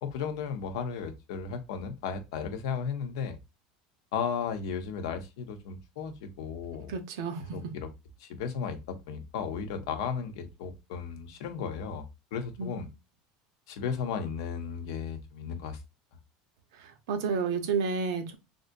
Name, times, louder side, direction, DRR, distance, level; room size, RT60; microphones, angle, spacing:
voice 1, 0.0-3.4 4.1-6.9 7.5-7.9 8.2-12.0 12.3-12.9 13.7-15.8, left 6 dB, 80° left, 0.7 m, -35 dB
voice 2, 6.9-7.5 12.6-12.8 16.8-18.4, right 5 dB, 85° right, 0.7 m, -31 dB
3.5 x 2.6 x 2.5 m
cardioid pair, 160°, 2 cm